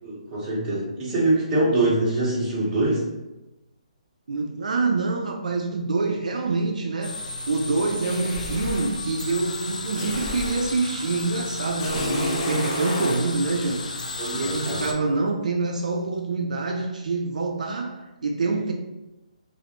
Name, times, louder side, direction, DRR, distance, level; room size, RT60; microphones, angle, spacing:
voice 1, 0.0-3.0 14.2-14.8, right 2 dB, 15° right, -8 dB, 0.9 m, -24 dB
voice 2, 4.3-7.1 7.5-18.7, right 3 dB, 75° right, 2 dB, 0.3 m, -26 dB
sound 1, 7.0-14.9, left 3 dB, 85° left, 0.4 m, -34 dB
sound 2, 8.0-9.0 9.9-10.7 11.8-13.2, left 1 dB, 30° left, 0.7 m, -30 dB
2.4 x 2.0 x 2.8 m, 1.0 s
hypercardioid pair, 150°, 4 cm